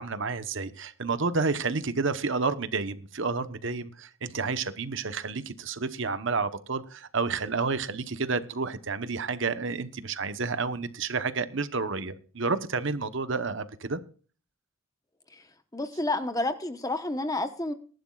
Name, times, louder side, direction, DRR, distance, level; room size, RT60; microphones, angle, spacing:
voice 1, 0.0-14.0, right 4 dB, 60° right, 12 dB, 1.0 m, -30 dB
voice 2, 15.7-17.7, left 2 dB, 15° left, 9 dB, 1.0 m, -30 dB
22.0 x 11.5 x 2.4 m, 0.40 s
head